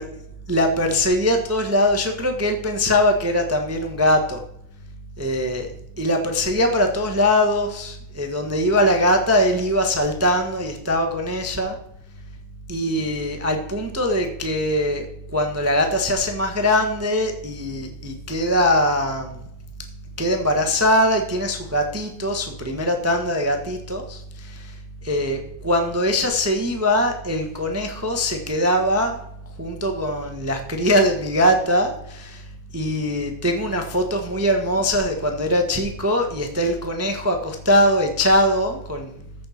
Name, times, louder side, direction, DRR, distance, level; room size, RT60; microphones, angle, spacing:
voice 1, 0.5-4.4 5.2-5.7 6.0-11.8 12.7-19.4 20.2-24.8 25.0-29.2 29.6-32.5 32.7-39.1, left 1 dB, 10° right, 4 dB, 0.7 m, -21 dB
14.5 x 6.6 x 4.3 m, 0.75 s
omnidirectional pair, 2.4 m